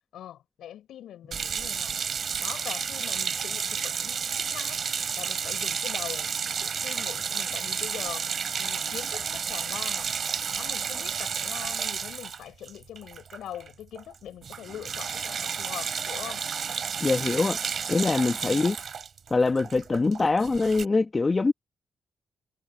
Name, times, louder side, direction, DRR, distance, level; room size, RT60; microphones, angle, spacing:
voice 1, 0.1-2.0 2.4-4.8 5.2-6.3 6.6-8.3 8.6-10.2 10.5-16.5 18.4-18.8, left 11 dB, 80° left, 6.7 m, -42 dB
sound 1, 1.3-13.7 14.0-14.2 14.4-20.9, right 6 dB, 55° right, 7.4 m, -31 dB
voice 2, 17.0-17.6 17.9-18.7 19.3-21.5, left 3 dB, 30° left, 1.5 m, -23 dB
cardioid pair, 70°, 0 cm